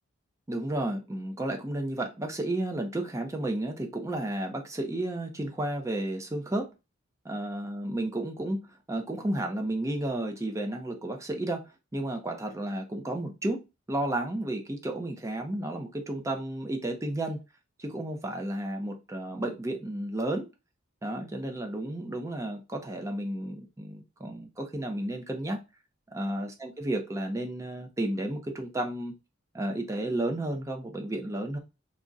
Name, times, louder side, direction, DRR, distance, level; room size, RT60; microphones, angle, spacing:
voice 1, 0.5-6.7 7.2-13.6 13.9-17.4 17.8-20.5 21.0-25.6 26.1-29.1 29.5-31.6, right 1 dB, 15° right, 3 dB, 0.4 m, -32 dB
2.6 x 2.1 x 3.5 m, 0.27 s
head